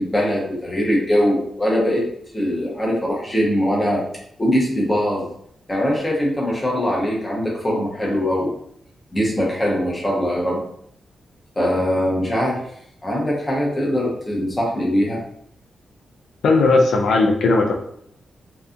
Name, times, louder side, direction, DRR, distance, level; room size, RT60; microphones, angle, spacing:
voice 1, 0.0-2.0 2.3-4.0 4.4-5.3 5.7-8.5 9.1-10.6 11.6-12.6 13.0-15.2, equal, 15° left, -3 dB, 0.7 m, -21 dB
voice 2, 16.4-17.8, left 3 dB, 80° left, 2 dB, 0.4 m, -16 dB
2.7 x 2.3 x 2.4 m, 0.68 s
wide cardioid pair, 175°, 0 cm